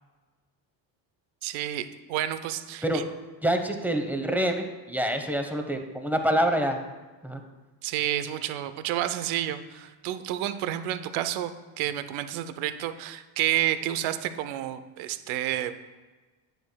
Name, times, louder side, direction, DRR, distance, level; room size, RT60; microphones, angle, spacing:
voice 1, 1.4-3.0 7.8-15.7, right 12 dB, 75° right, 11 dB, 0.7 m, -30 dB
voice 2, 3.4-6.8 7.2-7.4, right 1 dB, 5° right, 4 dB, 0.9 m, -26 dB
9.1 x 7.8 x 2.3 m, 1.3 s
supercardioid pair, 80°, 49 cm